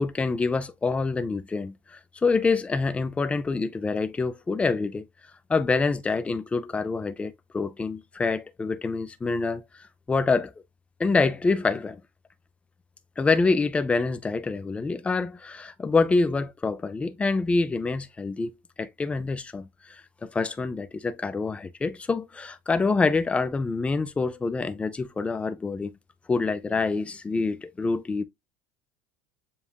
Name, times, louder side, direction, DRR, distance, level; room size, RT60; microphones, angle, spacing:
voice 1, 0.0-5.0 5.5-10.5 11.0-12.0 13.2-18.5 18.8-25.9 26.3-28.2, left 4 dB, 15° left, 0.4 m, -26 dB
7.1 x 2.4 x 2.3 m
supercardioid pair, 125°, 9 cm